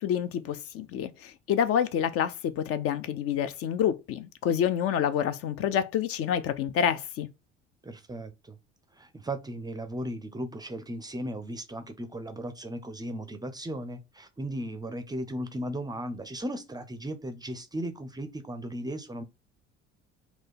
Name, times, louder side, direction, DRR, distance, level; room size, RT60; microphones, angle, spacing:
voice 1, 0.0-7.3, left 9 dB, 40° left, 0.5 m, -28 dB
voice 2, 7.8-8.6 9.0-19.2, right 1 dB, 10° right, 0.5 m, -36 dB
3.7 x 2.3 x 4.0 m
figure-of-eight pair, 60°, 35 cm